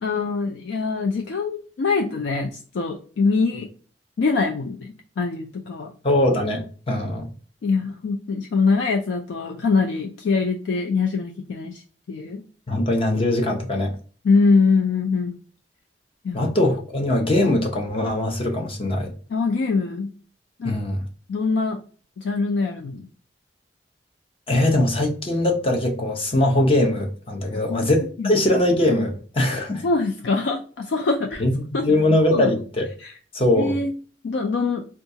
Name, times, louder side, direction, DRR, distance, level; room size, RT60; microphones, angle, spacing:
voice 1, 0.0-3.7 4.2-5.9 7.6-11.8 12.1-12.4 14.2-15.4 16.2-16.4 19.3-20.1 20.6-20.7 21.3-21.8 22.2-23.1 27.7-27.8 28.2-28.3 29.8-31.4 31.7-32.0 32.3-32.5 33.0-33.1 33.5-33.9 34.2-34.9, left 4 dB, 90° left, 0.4 m, -23 dB
voice 2, 6.0-7.3 12.7-14.0 16.3-19.1 20.6-21.0 24.5-29.8 31.4-32.9 33.3-33.8, left 1 dB, 30° left, 0.7 m, -21 dB
3.7 x 2.3 x 2.7 m
head